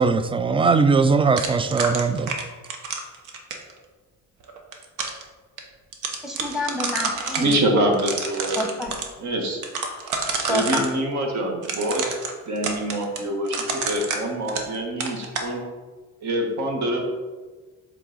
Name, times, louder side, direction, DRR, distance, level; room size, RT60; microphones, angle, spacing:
voice 1, 0.0-2.3, right 4 dB, 20° right, 0.4 m, -20 dB
sound 1, 1.4-3.7 4.5-5.2 5.6-5.7 5.9-7.6 7.9-9.1 9.6-10.9 11.6-14.8 15.0-15.5, right 4 dB, 85° right, 1.0 m, -28 dB
voice 2, 6.2-7.6 8.6-8.9 10.5-10.8, left 2 dB, ahead, 1.0 m, -28 dB
voice 3, 7.4-8.6 9.2-9.6 10.5-12.1 12.5-15.6 16.2-17.0, right 1 dB, 65° right, 1.5 m, -25 dB
7.5 x 3.9 x 3.9 m
cardioid pair, 90°, 30 cm